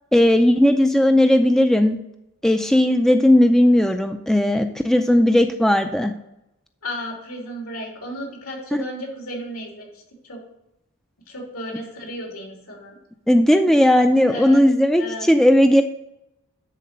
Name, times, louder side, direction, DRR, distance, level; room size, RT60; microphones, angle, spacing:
voice 1, 0.1-2.0 2.4-6.1 8.7-8.8 13.3-15.8, left 1 dB, ahead, 7 dB, 0.3 m, -16 dB
voice 2, 6.8-9.9 10.2-10.4 11.3-12.9 14.3-14.6 15.0-15.3, equal, 85° left, -1 dB, 3.1 m, -33 dB
10.5 x 4.2 x 6.6 m, 0.87 s
head